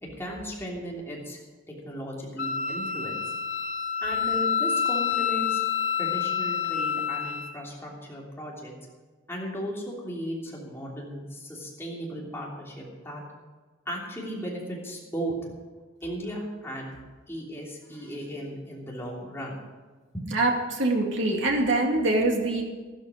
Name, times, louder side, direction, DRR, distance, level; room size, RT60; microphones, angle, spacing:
voice 1, 0.0-1.4 1.7-3.2 4.0-5.6 6.0-8.7 9.3-13.2 13.9-15.5 16.0-16.9 17.3-19.5 20.1-20.3, equal, 10° left, -4 dB, 3.1 m, -36 dB
Wind instrument woodwind instrument, 2.4-7.5, left 7 dB, 80° left, 1.8 m, -28 dB
voice 2, 20.3-22.6, right 2 dB, 65° right, 1 dB, 2.5 m, -24 dB
13.5 x 12.5 x 5.2 m, 1.3 s
head